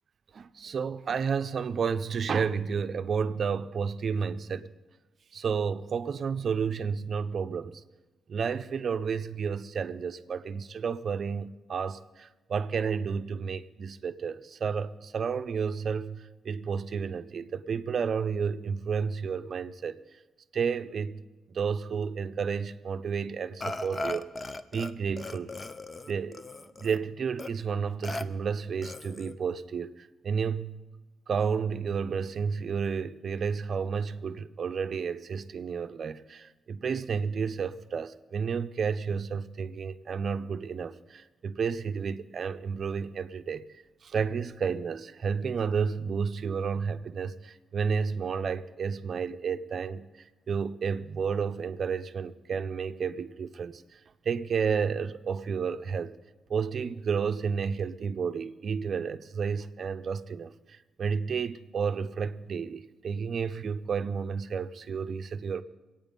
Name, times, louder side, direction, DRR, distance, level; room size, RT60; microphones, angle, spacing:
voice 1, 0.3-4.7 5.3-7.8 8.3-20.0 20.5-21.2 21.5-24.3 24.7-25.5 26.1-30.8 31.3-43.7 44.0-54.0 54.2-56.2 56.5-65.6, right 6 dB, 50° right, 0.6 m, -31 dB
Burping eructation, 23.6-24.9 25.2-27.0 27.4-27.5 28.0-28.2 28.8-29.4, left 2 dB, 25° left, 0.6 m, -37 dB
23.0 x 8.9 x 5.3 m
cardioid pair, 105°, 0 cm